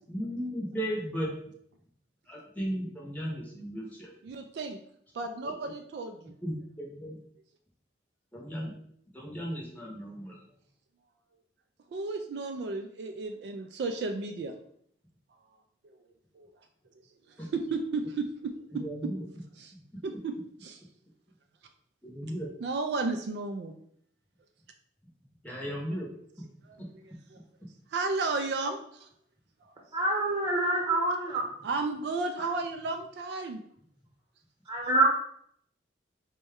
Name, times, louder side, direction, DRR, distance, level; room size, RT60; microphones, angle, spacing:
voice 1, 0.1-1.4 2.3-4.1 5.4-5.5 6.4-7.2 8.3-8.7 9.1-10.4 17.4-17.5 18.7-19.3 19.7-20.0 22.0-22.5 25.4-26.1 26.8-26.9, equal, 10° left, -3 dB, 0.7 m, -36 dB
voice 2, 4.2-4.8 5.1-6.3 11.9-14.5 16.4-16.5 17.5-19.1 19.6-19.7 20.0-20.3 20.6-20.8 22.6-23.7 27.9-28.8 31.6-33.6, right 3 dB, 60° right, 6 dB, 0.3 m, -33 dB
voice 3, 29.9-31.4 34.7-35.1, right 2 dB, 25° right, -3 dB, 0.9 m, -26 dB
4.0 x 2.2 x 3.5 m, 0.66 s
head